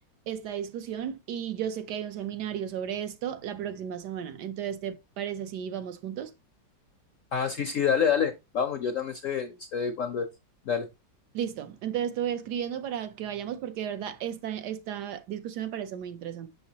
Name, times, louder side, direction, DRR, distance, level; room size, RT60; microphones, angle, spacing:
voice 1, 0.3-6.3 11.3-16.5, right 9 dB, 70° right, 1.2 m, -34 dB
voice 2, 7.3-10.3 10.7-10.9, left 7 dB, 70° left, 0.7 m, -27 dB
6.6 x 5.6 x 2.8 m
omnidirectional pair, 2.0 m